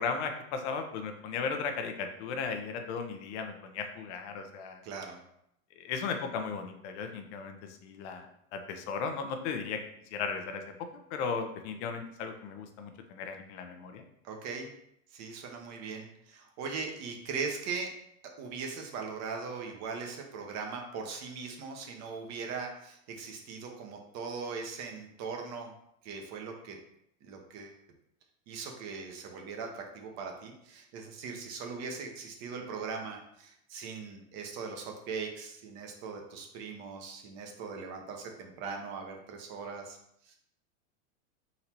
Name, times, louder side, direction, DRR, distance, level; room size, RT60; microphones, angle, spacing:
voice 1, 0.0-4.8 5.8-7.6 7.8-8.3 8.5-9.8 10.1-10.6 11.1-14.0, left 5 dB, 55° left, 5 dB, 0.7 m, -36 dB
voice 2, 4.8-5.2 14.2-14.7 15.1-17.9 18.4-25.7 26.0-26.8 27.2-27.8 28.5-40.0 40.3-40.4, right 5 dB, 40° right, 2 dB, 0.9 m, -40 dB
4.0 x 2.7 x 4.4 m, 0.74 s
supercardioid pair, 130°, 41 cm